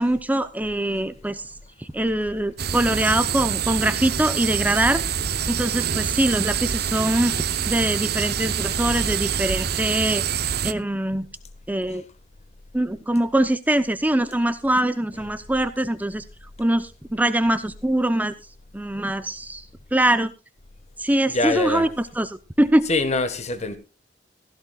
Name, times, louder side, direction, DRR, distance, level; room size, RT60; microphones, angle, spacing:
voice 1, 0.0-1.5 1.8-5.0 5.5-7.3 7.7-10.2 10.6-11.3 11.7-12.0 12.7-16.2 16.6-18.3 18.7-19.7 19.9-20.3 21.0-22.9, right 1 dB, 10° right, 0.7 m, -23 dB
sound 1, 2.6-10.7, right 8 dB, 55° right, 0.8 m, -26 dB
voice 2, 21.3-21.9 22.9-23.8, left 2 dB, 35° left, 1.5 m, -24 dB
16.5 x 14.0 x 2.4 m
head